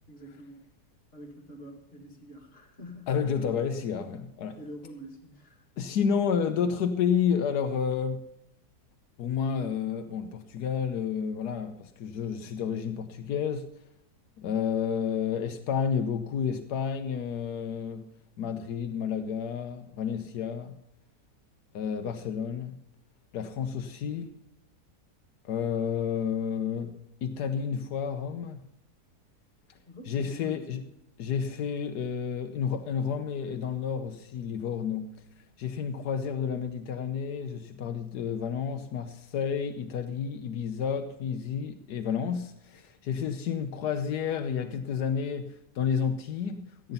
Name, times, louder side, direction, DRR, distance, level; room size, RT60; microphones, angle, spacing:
voice 1, 0.1-0.6 1.1-3.1 4.6-5.6 29.9-30.9, equal, 40° left, 2 dB, 2.5 m, -46 dB
voice 2, 3.1-4.6 5.8-8.3 9.2-13.7 14.4-18.1 18.4-20.7 21.7-22.7 23.3-24.3 25.4-28.6 30.1-30.8 31.2-35.2 35.6-46.9, left 7 dB, 85° left, 7 dB, 1.4 m, -30 dB
14.5 x 9.0 x 5.6 m, 0.82 s
omnidirectional pair, 1.7 m